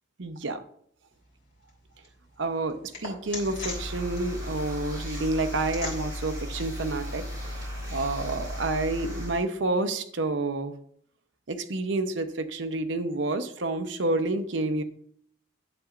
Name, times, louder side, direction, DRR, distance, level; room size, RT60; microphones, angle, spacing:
voice 1, 0.2-0.6 2.4-7.3 7.5-7.6 7.9-10.7 11.5-14.8, right 2 dB, 70° right, 9 dB, 0.8 m, -29 dB
sound 1, 1.1-7.9, left 3 dB, 60° left, 3.3 m, -44 dB
sound 2, 3.2-9.4, equal, 20° right, 3.9 m, -36 dB
11.0 x 8.2 x 2.5 m, 0.63 s
head